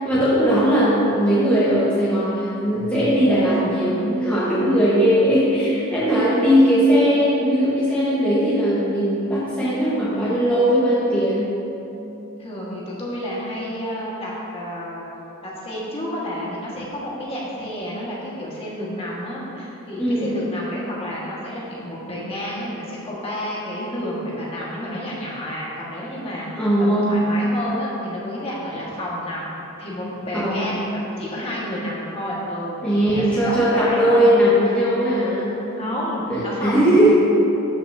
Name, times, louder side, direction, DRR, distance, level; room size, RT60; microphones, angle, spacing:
voice 1, 0.0-11.6 20.0-20.5 26.6-27.2 30.3-30.6 32.8-35.6 36.3-37.1, equal, 5° left, -10 dB, 1.2 m, -19 dB
voice 2, 6.3-6.7 12.4-15.0 15.4-32.8 33.1-34.7 35.7-37.1, equal, 30° left, -6 dB, 1.6 m, -30 dB
12.5 x 5.9 x 2.7 m, 3.0 s
head